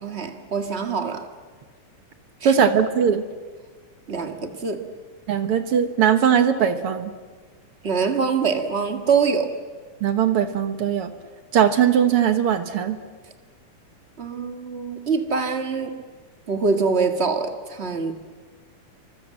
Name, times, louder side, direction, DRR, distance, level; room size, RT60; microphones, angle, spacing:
voice 1, 0.0-1.3 2.4-2.5 4.1-4.9 7.8-9.6 14.2-16.0 16.5-18.1, right 5 dB, 30° right, 6 dB, 1.2 m, -24 dB
voice 2, 2.4-3.2 5.3-7.1 10.0-11.1 11.5-13.0, right 8 dB, 60° right, 9 dB, 1.6 m, -20 dB
28.5 x 24.5 x 7.5 m, 1.5 s
omnidirectional pair, 3.7 m